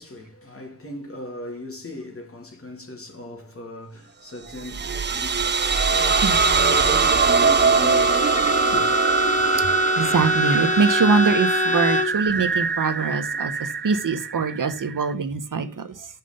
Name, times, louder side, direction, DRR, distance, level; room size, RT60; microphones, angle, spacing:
voice 1, 0.0-5.7 5.9-9.4 12.1-12.2, left 1 dB, 40° left, 2.6 m, -38 dB
sound 1, 4.5-15.1, right 6 dB, 35° right, 0.5 m, -22 dB
Bowed string instrument, 5.5-12.2, left 6 dB, 25° left, 0.5 m, -27 dB
voice 2, 10.0-16.1, right 5 dB, 70° right, 1.1 m, -23 dB
5.9 x 5.8 x 6.7 m
wide cardioid pair, 100°, 33 cm